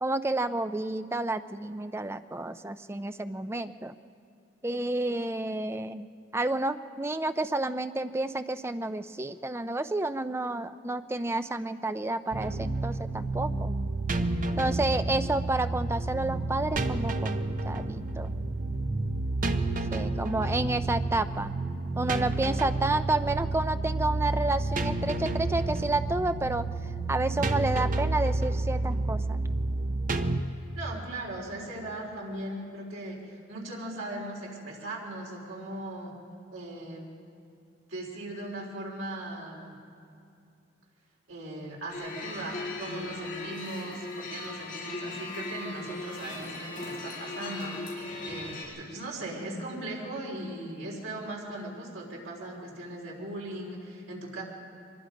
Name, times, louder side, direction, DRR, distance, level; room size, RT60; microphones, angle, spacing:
voice 1, 0.0-3.9 4.6-6.1 6.3-13.8 14.6-18.3 19.9-21.5 22.0-26.7 27.1-29.4, right 2 dB, 10° right, 10 dB, 0.4 m, -30 dB
sound 1, 12.3-30.4, right 2 dB, 40° right, 0.8 m, -30 dB
voice 2, 30.8-36.1 36.5-37.1 37.9-39.8 41.3-47.8 48.2-54.4, right 1 dB, 80° right, -3 dB, 3.9 m, -38 dB
sound 2, 41.9-48.6, left 2 dB, 45° left, 6.5 m, -38 dB
24.0 x 21.0 x 5.2 m, 2.4 s
head